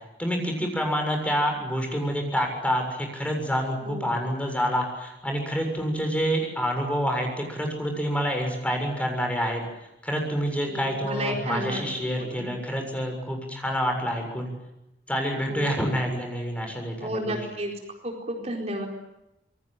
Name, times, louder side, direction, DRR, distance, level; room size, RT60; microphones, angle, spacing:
voice 1, 0.2-9.6 10.0-14.5 15.1-17.4, equal, 10° left, 3 dB, 7.0 m, -27 dB
voice 2, 3.8-4.2 10.7-12.5 15.5-15.7 17.0-17.7 18.0-18.9, right 1 dB, 40° right, 1 dB, 4.4 m, -32 dB
27.0 x 22.5 x 9.1 m, 0.90 s
head